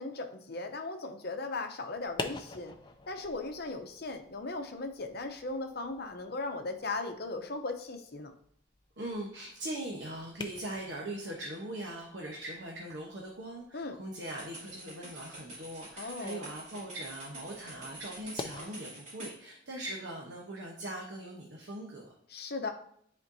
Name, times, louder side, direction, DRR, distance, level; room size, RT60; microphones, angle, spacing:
voice 1, 0.0-2.7 3.1-8.3 13.7-14.0 16.0-16.4 22.3-22.7, left 3 dB, 55° left, 5 dB, 0.8 m, -37 dB
sound 1, 1.9-18.6, left 3 dB, 25° left, 0.5 m, -48 dB
voice 2, 9.0-22.1, right 1 dB, 65° right, -1 dB, 1.0 m, -41 dB
sound 2, 14.2-19.4, right 2 dB, 35° right, 3.0 m, -47 dB
9.9 x 4.4 x 2.7 m, 0.66 s
head